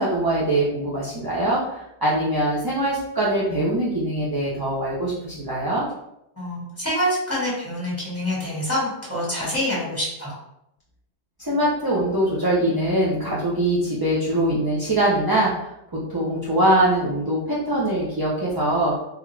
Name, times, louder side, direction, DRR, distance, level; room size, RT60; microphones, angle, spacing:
voice 1, 0.0-5.9 11.4-18.9, right 1 dB, 30° right, -7 dB, 0.4 m, -23 dB
voice 2, 6.4-10.3, equal, 10° left, -8 dB, 1.3 m, -26 dB
3.4 x 2.3 x 3.1 m, 0.82 s
omnidirectional pair, 1.3 m